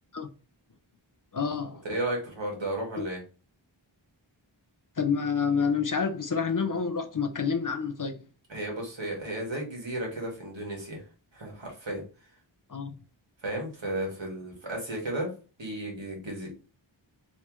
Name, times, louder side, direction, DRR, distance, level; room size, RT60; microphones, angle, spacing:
voice 1, 1.3-1.8 3.0-3.1 5.0-8.2 12.7-12.9, left 6 dB, 45° left, 0.6 m, -28 dB
voice 2, 1.8-3.2 8.5-11.0 11.3-12.0 13.4-15.3 15.6-16.5, right 1 dB, 70° right, 1.8 m, -33 dB
3.3 x 3.1 x 3.0 m
wide cardioid pair, 55°, 47 cm